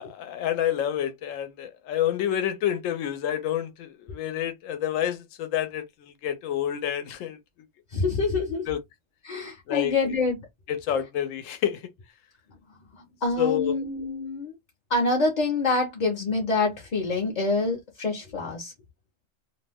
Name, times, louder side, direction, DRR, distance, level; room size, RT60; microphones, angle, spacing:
voice 1, 0.0-5.8 6.2-7.4 8.7-8.8 9.7-9.9 10.7-11.8 13.4-13.7, left 10 dB, 85° left, 1.0 m, -28 dB
voice 2, 7.9-8.7 9.2-10.4 12.9-14.5 14.9-18.7, left 3 dB, 45° left, 0.7 m, -26 dB
2.5 x 2.1 x 3.4 m
omnidirectional pair, 1.3 m